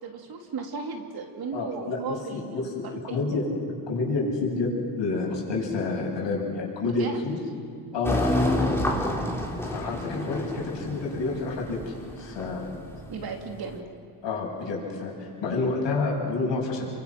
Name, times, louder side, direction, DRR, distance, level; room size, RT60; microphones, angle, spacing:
voice 1, 0.0-2.7 3.1-3.4 6.8-7.2 13.1-13.8, right 5 dB, 45° right, 2 dB, 3.2 m, -35 dB
voice 2, 1.5-3.5 3.9-7.4 7.9-8.7 9.6-12.7 14.2-16.9, left 3 dB, 60° left, -1 dB, 7.7 m, -29 dB
sound 1, 8.0-13.7, left 1 dB, 5° left, 3.7 m, -29 dB
28.0 x 24.0 x 6.1 m, 2.2 s
supercardioid pair, 85°, 49 cm